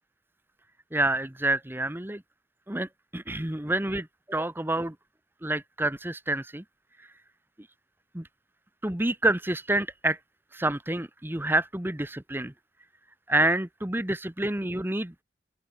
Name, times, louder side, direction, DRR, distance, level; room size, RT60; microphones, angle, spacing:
voice 1, 0.9-2.2 2.7-4.9 5.4-6.6 7.0-7.1 8.1-8.2 8.8-10.2 10.5-12.5 13.3-15.1, right 1 dB, 10° right, 1.0 m, -28 dB
open air
head